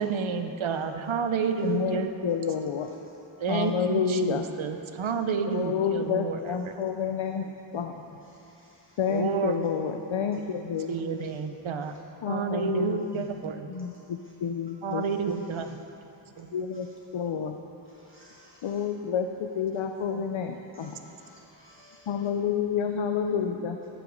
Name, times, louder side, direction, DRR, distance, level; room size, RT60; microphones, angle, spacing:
voice 1, 0.0-2.1 3.4-6.7 9.1-9.9 10.2-10.3 10.9-11.9 12.3-13.7 14.8-15.8 16.4-16.5 20.1-20.2 20.8-20.9, right 5 dB, 85° right, 7 dB, 0.6 m, -30 dB
voice 2, 0.7-1.1 2.4-2.5 2.8-3.2 5.0-5.1 8.2-9.0 10.8-11.4 11.8-12.0 13.7-14.4 15.0-15.7 16.3-17.0 17.8-18.9 20.7-22.3, left 1 dB, 25° left, -3 dB, 0.8 m, -58 dB
voice 3, 1.6-2.9 3.5-4.4 5.5-8.2 9.0-10.9 12.2-13.3 13.7-15.0 16.5-16.9 17.1-17.6 18.6-21.0 22.1-23.8, left 7 dB, 90° left, 5 dB, 0.5 m, -29 dB
14.0 x 4.8 x 5.1 m, 2.8 s
wide cardioid pair, 45°, 46 cm